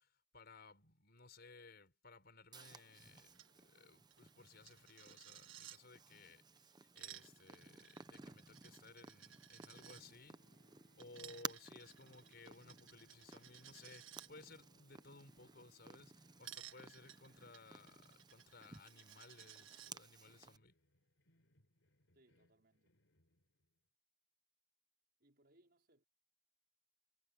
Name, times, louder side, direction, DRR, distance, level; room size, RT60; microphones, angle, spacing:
voice 1, 0.0-10.4 11.0-20.7, left 3 dB, 55° left, 5.2 m, -60 dB
Purr, 2.5-20.6, right 5 dB, 20° right, 0.7 m, -56 dB
Coin (dropping), 3.3-3.5 3.8-3.9 4.1-5.8 6.7-10.0 11.0-14.3 16.4-19.9, right 12 dB, 80° right, 1.7 m, -57 dB
sound 1, 7.4-9.6 9.9-23.9, left 2 dB, 80° left, 3.8 m, -77 dB
voice 2, 22.1-23.0 25.2-26.0, right 1 dB, 55° right, 4.9 m, -72 dB
head